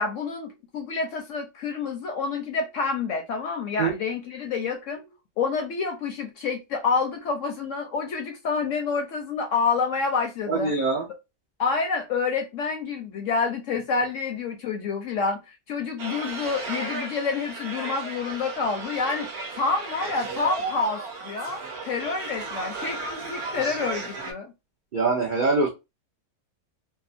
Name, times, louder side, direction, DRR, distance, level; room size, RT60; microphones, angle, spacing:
voice 1, 0.0-5.0 5.4-10.7 11.6-19.3 19.6-24.5, left 4 dB, 70° left, 0.8 m, -28 dB
voice 2, 10.5-11.1 24.9-25.7, right 3 dB, 85° right, 0.4 m, -23 dB
sound 1, 16.0-24.3, right 3 dB, 60° right, 0.7 m, -35 dB
2.8 x 2.2 x 2.4 m
omnidirectional pair, 1.7 m